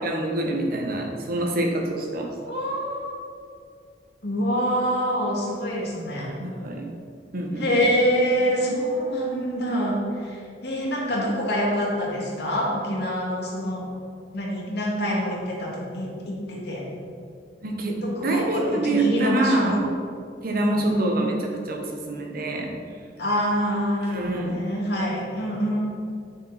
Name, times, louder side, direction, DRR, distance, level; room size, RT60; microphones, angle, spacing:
voice 1, 0.0-2.3 6.4-6.9 7.3-7.8 17.6-19.8 20.4-21.4 21.7-22.7 24.0-24.5, right 2 dB, 55° right, 2 dB, 1.2 m, -26 dB
voice 2, 2.5-3.2 4.2-6.3 7.6-13.8 14.3-16.8 17.9-19.8 20.5-21.2 23.2-25.8, equal, 65° left, -3 dB, 2.1 m, -26 dB
8.9 x 7.0 x 4.2 m, 2.3 s
head